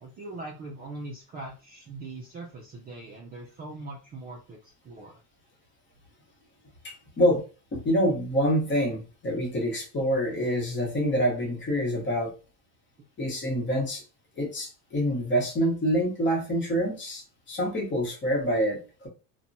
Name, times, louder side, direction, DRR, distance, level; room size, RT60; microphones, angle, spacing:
voice 1, 0.0-5.2, right 2 dB, 25° right, -1 dB, 0.4 m, -41 dB
voice 2, 6.8-7.4 7.7-12.3 13.2-14.0 14.4-17.2 17.5-19.1, equal, 30° left, -1 dB, 1.0 m, -26 dB
2.8 x 2.2 x 2.6 m, 0.33 s
cardioid pair, 150°, 40 cm